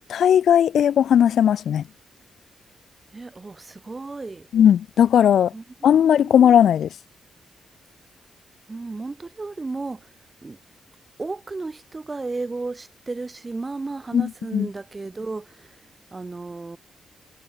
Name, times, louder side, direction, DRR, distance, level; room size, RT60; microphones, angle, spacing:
voice 1, 0.0-1.8 4.5-5.5 5.8-6.9 14.1-14.7, left 9 dB, 75° left, 0.6 m, -17 dB
voice 2, 3.1-4.5 5.5-6.5 8.7-10.1 10.4-10.6 11.2-16.8, right 3 dB, 25° right, 1.3 m, -34 dB
cardioid pair, 115°, 0 cm